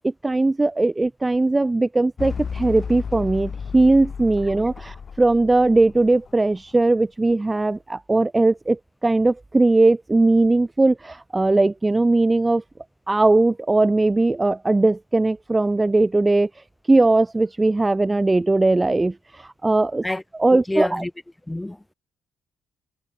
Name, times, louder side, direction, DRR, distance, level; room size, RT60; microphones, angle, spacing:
voice 1, 0.0-12.6 13.1-20.0 20.4-21.0, right 2 dB, 15° right, 1.6 m, -19 dB
sound 1, 2.2-6.7, left 6 dB, 45° left, 3.2 m, -33 dB
voice 2, 20.5-21.1 21.5-21.8, left 1 dB, 10° left, 6.8 m, -27 dB
cardioid pair, 90°, 0 cm